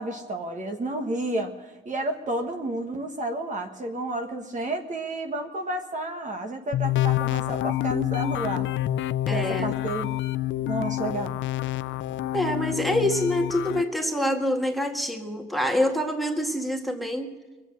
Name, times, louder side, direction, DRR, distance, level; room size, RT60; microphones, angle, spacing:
voice 1, 0.0-8.7 9.3-10.1 10.7-11.4, right 2 dB, 40° right, 4 dB, 1.5 m, -31 dB
sound 1, 6.7-13.8, left 14 dB, 70° left, 0.5 m, -27 dB
voice 2, 9.3-9.7 12.3-17.3, left 1 dB, ahead, 3 dB, 1.8 m, -26 dB
22.0 x 8.2 x 7.3 m, 1.2 s
cardioid pair, 90°, 20 cm